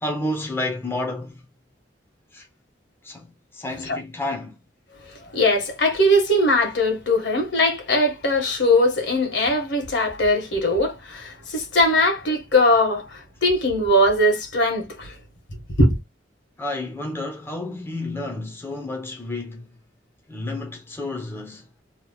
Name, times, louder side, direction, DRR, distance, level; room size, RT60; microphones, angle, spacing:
voice 1, 0.0-1.4 2.3-2.5 3.0-3.3 3.5-4.6 16.6-19.7 20.3-21.7, left 2 dB, 15° left, 0.8 m, -30 dB
voice 2, 5.0-15.1 15.8-15.9, left 1 dB, 70° left, 1.5 m, -20 dB
3.1 x 2.4 x 3.6 m
head